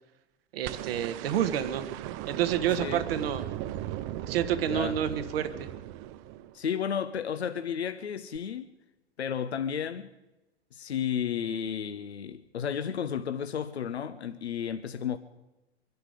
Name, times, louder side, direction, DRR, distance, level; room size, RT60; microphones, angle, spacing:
voice 1, 0.5-1.9 2.3-3.5 4.3-5.7, right 10 dB, 65° right, 1.5 m, -29 dB
sound 1, 0.6-6.8 8.3-8.4, right 13 dB, 40° right, 0.7 m, -37 dB
voice 2, 6.5-8.7 9.2-10.1 10.7-15.2, left 8 dB, 80° left, 0.9 m, -32 dB
25.0 x 11.0 x 5.0 m
figure-of-eight pair, 95°, 32 cm